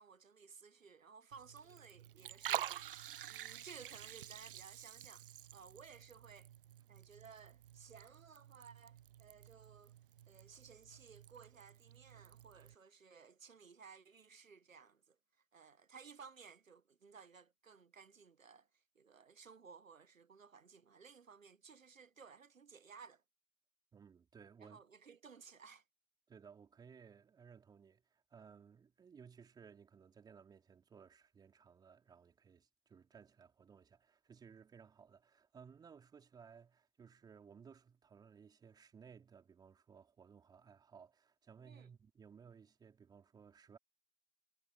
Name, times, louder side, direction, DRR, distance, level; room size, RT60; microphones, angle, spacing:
voice 1, 0.0-5.3 5.5-6.5 6.9-9.9 10.3-15.2 15.5-18.7 18.9-23.2 24.6-25.8 41.6-41.9, right 5 dB, 85° right, 1.2 m, -58 dB
Liquid, 1.3-12.7, right 11 dB, 45° right, 0.7 m, -48 dB
voice 2, 23.9-24.8 26.3-43.8, right 6 dB, 10° right, 4.0 m, -60 dB
figure-of-eight pair, 130°, 38 cm